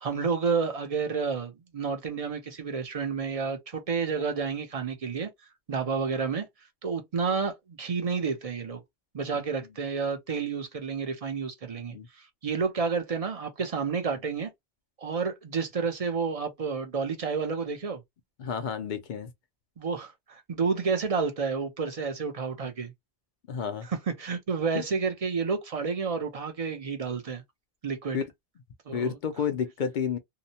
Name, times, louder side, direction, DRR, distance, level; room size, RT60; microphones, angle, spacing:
voice 1, 0.0-5.3 5.7-6.5 6.8-8.8 9.1-11.9 12.4-14.5 15.0-18.0 19.8-22.9 23.9-27.4 27.8-28.2 28.9-29.2, right 5 dB, 40° right, 0.6 m, -30 dB
voice 2, 18.4-19.3 23.5-23.9 24.7-24.8 28.1-28.2 28.9-30.2, left 7 dB, 60° left, 0.6 m, -30 dB
2.8 x 2.1 x 2.7 m
omnidirectional pair, 1.0 m